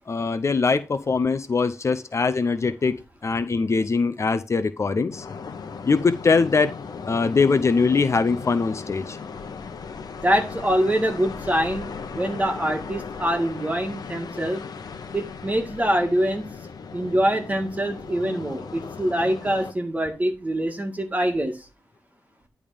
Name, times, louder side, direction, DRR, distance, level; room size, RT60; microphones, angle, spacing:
voice 1, 0.1-5.2 5.9-6.7 7.1-9.2, left 4 dB, 45° left, 11 dB, 0.6 m, -22 dB
sound 1, 5.1-19.7, left 5 dB, 80° left, 0.9 m, -37 dB
voice 2, 10.2-14.7 15.1-16.4 16.9-21.6, right 1 dB, 25° right, 4 dB, 1.9 m, -24 dB
10.5 x 3.6 x 5.0 m, 0.28 s
wide cardioid pair, 110°, 7 cm